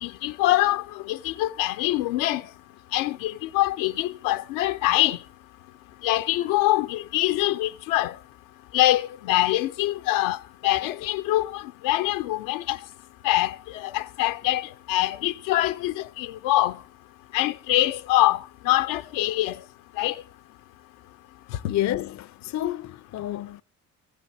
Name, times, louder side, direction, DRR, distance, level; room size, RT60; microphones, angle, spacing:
voice 1, 0.0-2.4 2.9-5.2 6.0-8.1 8.7-10.4 10.6-12.8 13.2-16.8 17.3-19.6 20.0-20.2, left 16 dB, 70° left, 0.8 m, -24 dB
voice 2, 21.6-23.6, left 13 dB, 35° left, 0.6 m, -29 dB
15.5 x 6.5 x 9.4 m
hypercardioid pair, 50°, 47 cm